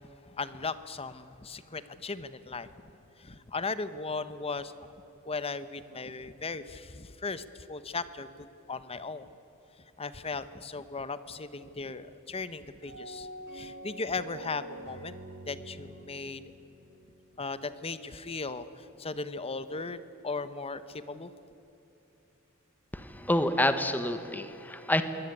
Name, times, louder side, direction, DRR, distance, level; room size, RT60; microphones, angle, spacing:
voice 1, 0.0-4.7 5.2-9.3 10.0-13.3 13.5-15.1 15.5-16.4 17.4-21.3, left 4 dB, 30° left, 13 dB, 0.9 m, -37 dB
sound 1, 12.8-18.0, right 1 dB, 50° right, 6.1 m, -46 dB
voice 2, 22.9-25.0, left 1 dB, 10° left, 9 dB, 1.3 m, -28 dB
23.0 x 18.0 x 9.8 m, 2.9 s
head